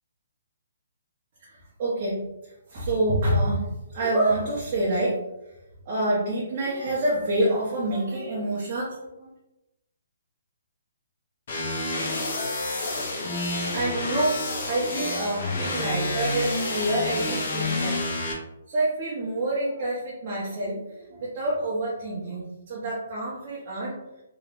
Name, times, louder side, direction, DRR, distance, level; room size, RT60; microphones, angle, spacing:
voice 1, 1.4-5.2 5.8-9.3 13.3-18.0 18.7-24.0, right 1 dB, 25° right, -7 dB, 0.7 m, -27 dB
sound 1, 11.5-18.3, left 2 dB, 35° left, 0.7 m, -29 dB
3.4 x 2.9 x 2.4 m, 0.93 s
hypercardioid pair, 175°, 0 cm